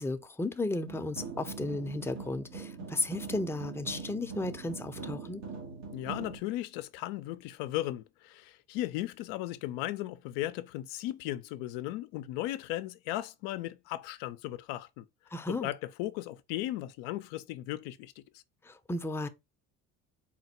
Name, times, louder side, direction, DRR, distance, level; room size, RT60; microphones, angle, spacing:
voice 1, 0.0-5.4 15.3-15.7 18.6-19.3, left 2 dB, 5° left, 0.5 m, -34 dB
sound 1, 0.9-6.4, right 4 dB, 90° right, 1.7 m, -42 dB
voice 2, 5.9-15.1 15.5-18.1, left 15 dB, 80° left, 0.5 m, -36 dB
4.2 x 2.1 x 4.2 m
supercardioid pair, 70°, 35 cm